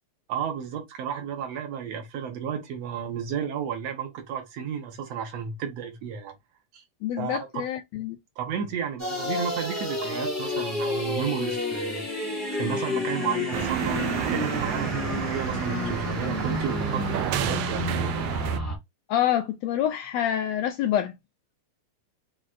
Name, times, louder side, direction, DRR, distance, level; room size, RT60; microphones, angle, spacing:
voice 1, 0.3-6.3 6.7-6.8 7.2-7.4 8.4-12.0 12.5-18.1, right 7 dB, 65° right, 2.0 m, -32 dB
voice 2, 7.0-8.2 19.1-21.1, left 11 dB, 80° left, 1.5 m, -26 dB
sound 1, 9.0-18.8, left 2 dB, 10° left, 0.7 m, -30 dB
sound 2, 13.5-18.6, right 12 dB, 85° right, 2.0 m, -30 dB
6.3 x 2.6 x 2.5 m
omnidirectional pair, 3.4 m